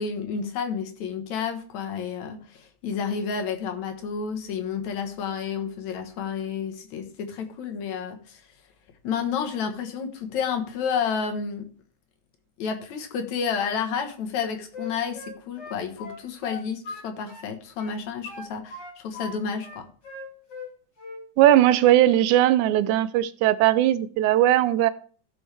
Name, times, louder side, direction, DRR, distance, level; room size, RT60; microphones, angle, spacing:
voice 1, 0.0-8.4 9.0-11.6 12.6-19.9, left 6 dB, 70° left, 2.5 m, -30 dB
Wind instrument woodwind instrument, 14.3-17.5 17.8-19.3 19.6-20.7 21.0-21.3, left 3 dB, 40° left, 2.1 m, -39 dB
voice 2, 21.4-24.9, right 13 dB, 80° right, 2.0 m, -19 dB
15.5 x 6.2 x 3.4 m
omnidirectional pair, 3.5 m